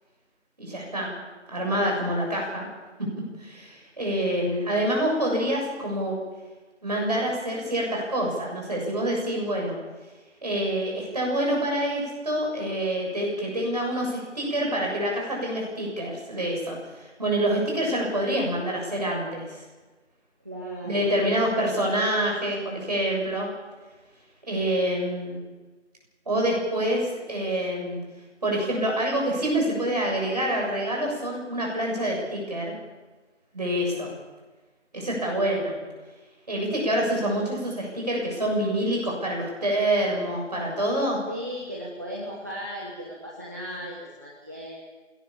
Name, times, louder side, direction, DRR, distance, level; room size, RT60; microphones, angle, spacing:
voice 1, 0.6-1.1 1.5-2.7 3.4-6.2 6.8-9.8 10.4-19.6 20.9-23.5 24.5-25.4 26.3-28.0 28.4-32.7 33.5-34.1 34.9-35.7 36.5-41.2, right 1 dB, 35° right, -1 dB, 7.2 m, -26 dB
voice 2, 20.4-21.2 41.3-44.8, equal, 15° right, -4 dB, 1.4 m, -36 dB
21.5 x 18.0 x 7.2 m, 1.3 s
figure-of-eight pair, 165°, 36 cm